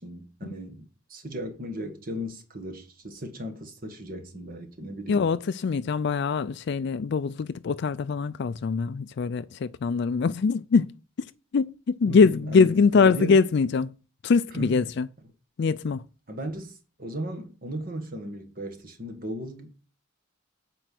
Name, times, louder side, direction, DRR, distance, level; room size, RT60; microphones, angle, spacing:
voice 1, 0.0-5.3 12.1-13.4 14.5-14.8 16.3-19.9, equal, 45° right, 1.7 m, -36 dB
voice 2, 5.1-10.9 11.5-11.7 12.0-13.9 14.2-15.1 15.6-16.0, left 5 dB, 60° left, 0.4 m, -23 dB
9.0 x 4.5 x 7.6 m
head